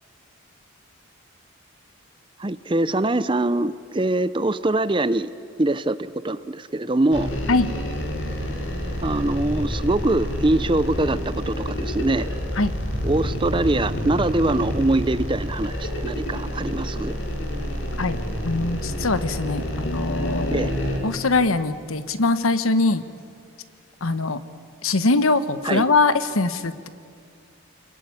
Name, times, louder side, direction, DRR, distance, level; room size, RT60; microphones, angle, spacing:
voice 1, 2.4-5.3 5.6-7.3 9.0-11.2 11.5-12.3 13.0-17.1 20.5-20.7 25.6-25.8, right 2 dB, 25° right, 15 dB, 0.6 m, -23 dB
sound 1, 7.1-21.0, equal, 65° left, 4.1 m, -28 dB
sound 2, 8.4-15.4, left 1 dB, 60° right, 3.7 m, -37 dB
voice 2, 18.0-20.7 21.0-23.0 24.0-24.4 24.8-26.9, left 3 dB, 80° left, 12 dB, 1.2 m, -22 dB
26.5 x 22.0 x 9.7 m, 2.2 s
head